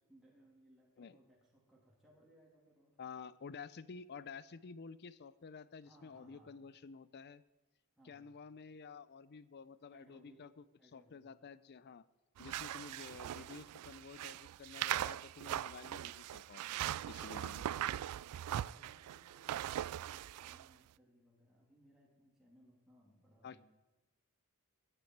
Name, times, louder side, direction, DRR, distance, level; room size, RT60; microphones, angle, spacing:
voice 1, 0.0-3.0 5.8-6.6 8.0-8.3 9.9-10.5 10.8-11.2 11.7-11.9 18.6-23.6, right 1 dB, ahead, -5 dB, 2.9 m, -66 dB
voice 2, 3.0-7.4 8.0-10.6 10.9-12.0 12.4-16.7 17.0-17.7 23.4-23.6, left 5 dB, 50° left, 17 dB, 0.5 m, -51 dB
sound 1, 12.4-20.7, right 12 dB, 90° right, 0.3 m, -40 dB
16.5 x 10.0 x 4.7 m, 1.1 s
head